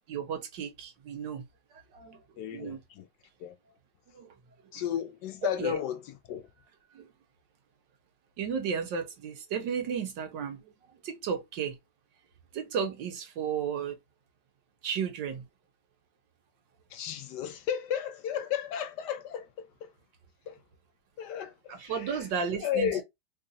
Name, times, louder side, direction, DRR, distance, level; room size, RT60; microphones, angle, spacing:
voice 1, 0.1-1.4 1.7-2.2 2.5-2.8 4.1-4.3 5.6-5.8 6.9-7.1 8.4-10.7 11.0-11.8 12.5-14.0 14.8-15.5 21.7-23.0, right 7 dB, 75° right, 1.6 m, -34 dB
voice 2, 2.4-3.1 3.4-3.6 4.7-6.5 16.9-19.9 20.5-20.6 21.2-22.2 22.5-23.0, left 9 dB, 70° left, 1.2 m, -34 dB
3.5 x 2.3 x 3.9 m
omnidirectional pair, 2.0 m